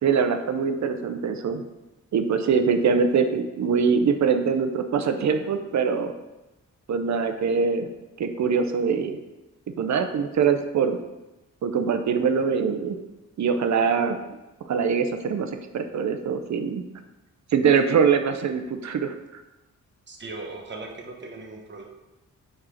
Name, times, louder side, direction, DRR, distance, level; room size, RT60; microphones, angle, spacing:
voice 1, 0.0-1.6 2.1-6.1 6.9-7.9 8.2-9.2 9.8-11.0 11.6-13.0 13.4-14.2 14.7-16.8 17.5-19.1, right 6 dB, 60° right, 8 dB, 0.6 m, -23 dB
voice 2, 20.1-21.8, right 3 dB, 35° right, 1 dB, 1.1 m, -38 dB
4.9 x 4.4 x 4.9 m, 1.0 s
wide cardioid pair, 120°, 31 cm